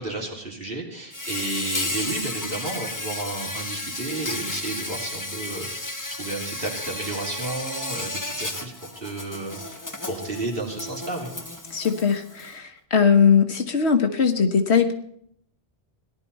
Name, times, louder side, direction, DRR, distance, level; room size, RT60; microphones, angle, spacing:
voice 1, 0.0-9.8 10.1-11.3, right 2 dB, 60° right, 3.4 m, -32 dB
Insect, 1.1-12.5, left 2 dB, 20° left, 1.0 m, -33 dB
voice 2, 11.7-14.9, left 6 dB, 90° left, 1.6 m, -20 dB
18.0 x 11.5 x 4.2 m
omnidirectional pair, 1.1 m